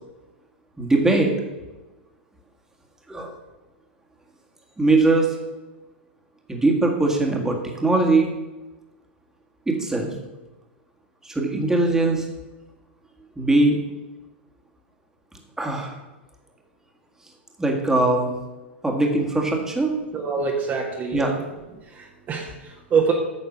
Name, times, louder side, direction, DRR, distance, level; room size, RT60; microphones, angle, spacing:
voice 1, 0.8-1.3 3.1-3.3 4.8-5.4 6.5-8.3 9.7-10.1 11.2-12.3 13.4-13.8 15.6-15.9 17.6-18.3 18.8-20.0 21.1-21.3, right 2 dB, 10° right, 1 dB, 1.8 m, -21 dB
voice 2, 20.1-21.4 21.9-23.1, right 5 dB, 30° right, 0 dB, 1.4 m, -25 dB
9.3 x 6.4 x 6.2 m, 1.1 s
figure-of-eight pair, 100°, 6 cm